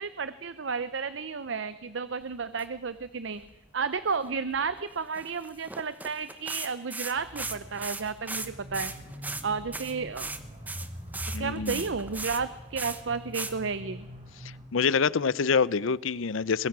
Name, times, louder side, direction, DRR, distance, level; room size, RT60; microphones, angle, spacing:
voice 1, 0.0-3.4 3.7-8.9 9.4-10.3 11.4-14.1, right 5 dB, 70° right, 0.7 m, -32 dB
sound 1, 2.4-2.7 3.0-3.1 3.4-3.6 4.1-4.8 5.1-8.5 8.7-9.4 9.7-10.4 10.7-12.4 12.8-13.0 13.3-13.5, right 3 dB, 10° right, 0.9 m, -37 dB
sound 2, 7.2-14.6, equal, 30° right, 4.1 m, -44 dB
voice 2, 11.3-11.8 14.7-16.7, left 5 dB, 85° left, 0.6 m, -26 dB
22.5 x 22.0 x 6.2 m
head